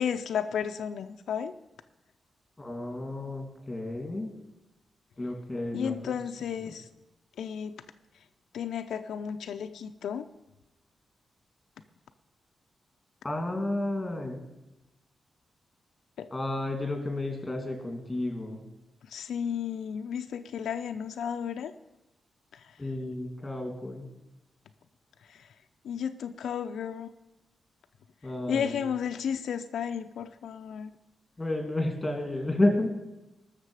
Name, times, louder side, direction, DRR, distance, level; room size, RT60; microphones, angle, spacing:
voice 1, 0.0-1.5 5.7-6.9 7.4-7.7 8.5-10.3 16.2-16.3 19.1-21.7 22.5-22.8 25.3-25.5 25.8-27.1 28.5-30.9, left 8 dB, 90° left, 7 dB, 0.5 m, -33 dB
voice 2, 2.6-4.3 5.2-6.2 6.4-6.7 13.2-14.4 16.3-18.6 22.8-24.1 28.2-28.8 31.4-32.9, left 1 dB, 15° left, 4 dB, 2.4 m, -31 dB
19.5 x 6.7 x 4.9 m, 0.99 s
wide cardioid pair, 135°, 0 cm